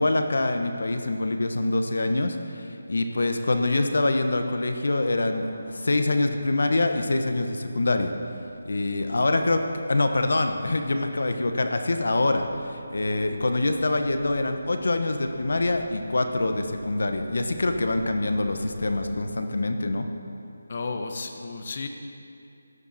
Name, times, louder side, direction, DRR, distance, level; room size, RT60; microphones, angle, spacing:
voice 1, 0.0-5.5 5.7-8.1 8.6-9.6 9.9-20.1, left 2 dB, 70° left, 6 dB, 1.3 m, -25 dB
sound 1, 5.4-19.3, left 2 dB, 20° left, 1.5 m, -49 dB
voice 2, 20.7-21.9, left 4 dB, 45° left, 5 dB, 1.2 m, -33 dB
16.5 x 10.5 x 4.3 m, 2.6 s
figure-of-eight pair, 165°, 0 cm